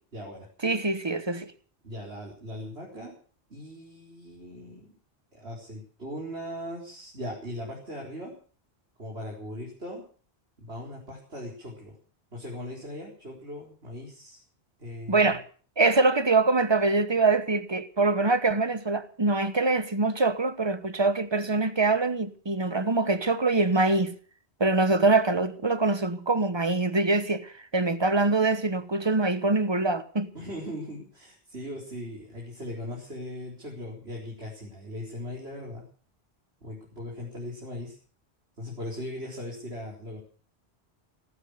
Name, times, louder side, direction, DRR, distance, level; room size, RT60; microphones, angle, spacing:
voice 1, 0.1-0.5 1.8-3.1 3.5-4.8 5.3-8.3 9.0-10.0 10.6-11.9 12.3-14.4 14.8-15.4 30.3-35.8 36.6-38.0 38.6-40.2, left 1 dB, 80° right, 4.8 m, -39 dB
voice 2, 0.6-1.5 15.1-15.4 15.8-24.2 24.6-30.3, right 3 dB, 25° right, 1.1 m, -24 dB
18.0 x 12.5 x 6.5 m
omnidirectional pair, 1.1 m